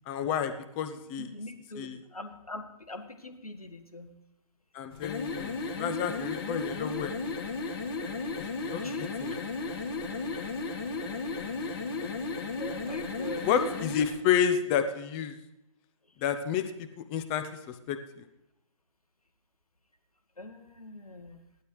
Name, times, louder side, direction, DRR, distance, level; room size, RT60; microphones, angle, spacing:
voice 1, 0.1-1.3 1.8-2.0 4.7-7.1 8.4-9.4 13.4-15.3 16.2-16.7 17.0-18.0, left 8 dB, 20° left, 9 dB, 0.6 m, -30 dB
voice 2, 1.2-4.1 8.8-9.4 10.3-10.5 12.6-13.5 20.4-21.4, left 2 dB, 80° left, 7 dB, 1.6 m, -43 dB
sound 1, 4.9-14.1, left 3 dB, 40° left, 1.9 m, -34 dB
16.5 x 12.0 x 3.2 m, 0.87 s
figure-of-eight pair, 135°, 18 cm